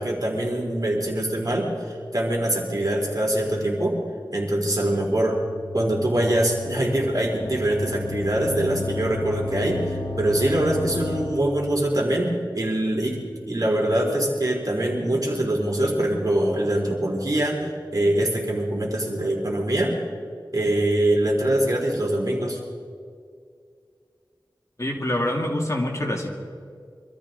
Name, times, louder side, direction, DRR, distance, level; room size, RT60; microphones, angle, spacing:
voice 1, 0.0-4.0 4.3-5.4 5.7-13.2 13.5-19.9 20.5-22.6, right 1 dB, 50° right, -2 dB, 4.0 m, -23 dB
sound 1, 5.0-11.8, left 3 dB, 75° left, 1.7 m, -33 dB
voice 2, 24.8-26.3, left 1 dB, 40° left, -1 dB, 2.5 m, -25 dB
25.0 x 13.5 x 4.1 m, 2.2 s
wide cardioid pair, 60°, 8 cm